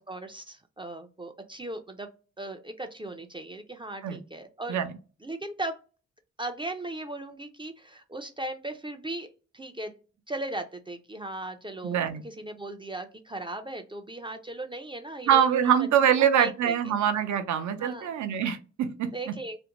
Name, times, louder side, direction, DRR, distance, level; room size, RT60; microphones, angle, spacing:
voice 1, 0.1-2.1 2.4-4.8 5.2-5.8 6.4-9.3 9.5-9.9 10.3-12.0 12.2-15.7 16.0-17.0 17.8-18.1 19.1-19.6, right 2 dB, 20° right, 6 dB, 0.3 m, -37 dB
voice 2, 11.8-12.2 15.3-19.3, right 9 dB, 80° right, 9 dB, 0.5 m, -24 dB
2.5 x 2.1 x 2.8 m, 0.34 s
cardioid pair, 90°, 29 cm